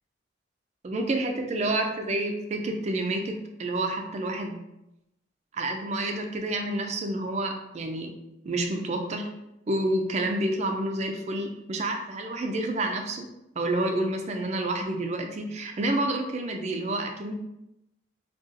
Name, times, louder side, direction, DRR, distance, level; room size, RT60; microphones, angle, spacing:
voice 1, 0.8-3.3 3.6-4.6 5.5-8.1 8.4-9.3 9.7-13.3 13.6-17.3, right 1 dB, 35° right, 4 dB, 0.4 m, -29 dB
3.7 x 2.3 x 2.6 m, 0.89 s
head